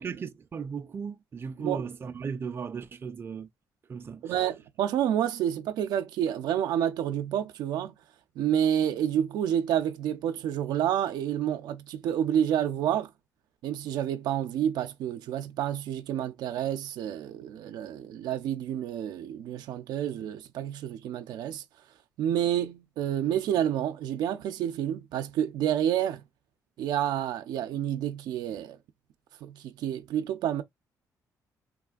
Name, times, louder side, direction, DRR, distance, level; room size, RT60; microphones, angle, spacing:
voice 1, 0.0-3.5 3.9-4.4, right 6 dB, 35° right, 0.4 m, -36 dB
voice 2, 4.2-7.9 8.4-13.1 13.6-21.6 22.2-26.2 26.8-28.8 29.4-30.6, right 10 dB, 90° right, 0.5 m, -29 dB
3.5 x 2.5 x 2.3 m
cardioid pair, 105°, 7 cm